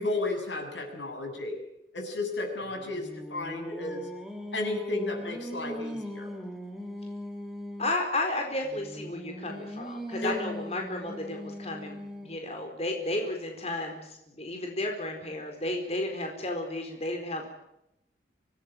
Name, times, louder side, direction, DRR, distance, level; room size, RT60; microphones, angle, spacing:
voice 1, 0.0-1.6 1.9-4.1 4.5-6.3 10.2-10.4, left 2 dB, 85° left, 5 dB, 7.3 m, -33 dB
Singing, 2.6-8.0 8.6-12.5, equal, ahead, 2.8 m, -40 dB
voice 2, 7.8-17.5, left 2 dB, 35° left, 3 dB, 4.4 m, -33 dB
25.5 x 18.5 x 9.0 m, 0.84 s
head